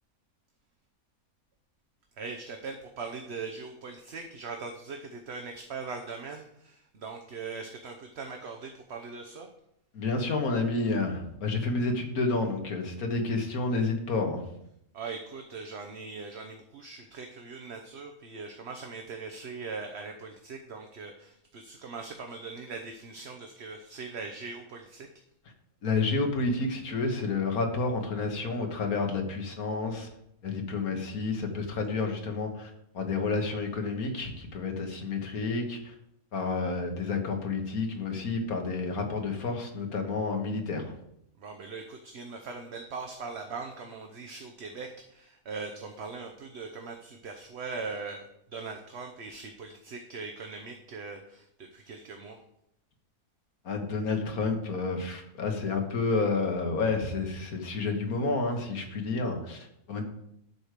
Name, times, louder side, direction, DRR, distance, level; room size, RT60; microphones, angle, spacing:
voice 1, 2.2-9.5 14.9-25.1 41.4-52.4, right 4 dB, 50° right, 4 dB, 1.1 m, -40 dB
voice 2, 9.9-14.4 25.8-30.1 30.4-36.0 36.3-40.9 53.6-60.0, left 3 dB, 80° left, 4 dB, 1.9 m, -30 dB
10.5 x 4.8 x 6.7 m, 0.77 s
omnidirectional pair, 1.5 m